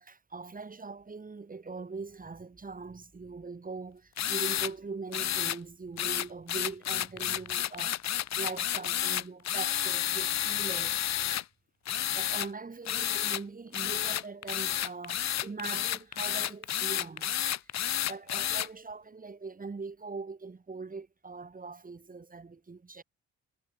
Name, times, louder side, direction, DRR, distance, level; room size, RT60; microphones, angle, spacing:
voice 1, 0.0-8.0 8.3-11.0 12.1-23.0, right 4 dB, 30° right, 4.6 m, -42 dB
sound 1, 4.2-4.7 5.1-5.6 6.0-11.4 11.9-12.5 12.9-13.4 13.7-18.7, left 11 dB, 65° left, 1.5 m, -31 dB
cardioid pair, 90°, 30 cm